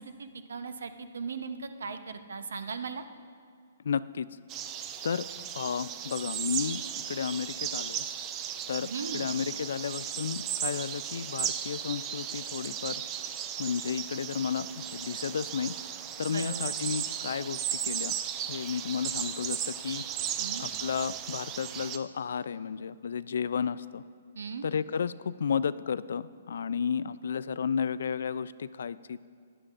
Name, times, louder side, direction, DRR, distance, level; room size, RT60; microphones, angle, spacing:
voice 1, 0.0-3.0 8.8-9.3 16.3-16.7 20.4-20.7 24.4-24.7, right 5 dB, 90° right, 9 dB, 0.7 m, -38 dB
voice 2, 3.9-4.3 5.0-5.3 5.5-6.8 7.1-8.0 8.7-8.9 9.1-12.9 13.6-15.7 16.2-18.1 18.5-20.0 20.6-24.0 24.6-29.2, left 7 dB, 70° left, 17 dB, 0.3 m, -32 dB
sound 1, 4.5-22.0, right 10 dB, 20° right, 0.3 m, -36 dB
15.5 x 11.0 x 2.5 m, 2.3 s
hypercardioid pair, 165°, 0 cm